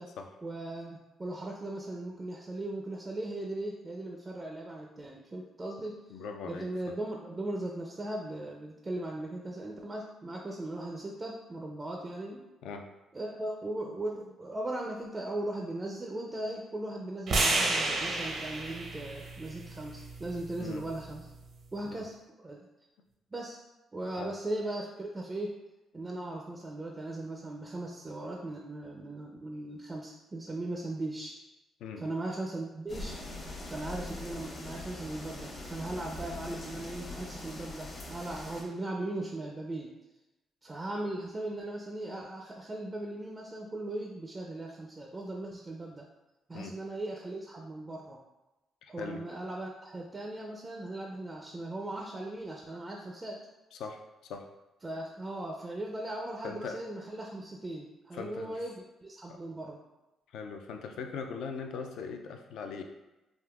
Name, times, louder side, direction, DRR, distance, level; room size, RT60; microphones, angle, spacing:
voice 1, 0.4-6.0 6.4-12.4 13.1-21.3 21.7-22.2 22.4-22.6 23.3-23.6 23.9-25.5 25.9-31.4 32.0-33.2 33.6-39.9 40.6-46.1 46.5-48.2 48.9-53.4 54.8-59.8, right 1 dB, 30° right, 0 dB, 0.4 m, -38 dB
voice 2, 6.1-6.7 12.6-12.8 20.6-20.8 21.8-22.0 24.2-24.3 31.8-32.0 46.5-46.7 48.8-49.2 53.7-54.0 54.3-54.4 56.4-56.8 58.1-58.6 59.3-59.4 60.3-62.8, left 5 dB, 80° left, 4 dB, 0.3 m, -40 dB
sound 1, 17.3-21.5, right 2 dB, 70° right, 0.7 m, -32 dB
sound 2, 32.9-38.6, left 2 dB, 55° left, 0.9 m, -42 dB
3.6 x 2.5 x 2.3 m, 1.0 s
cardioid pair, 75°, 0 cm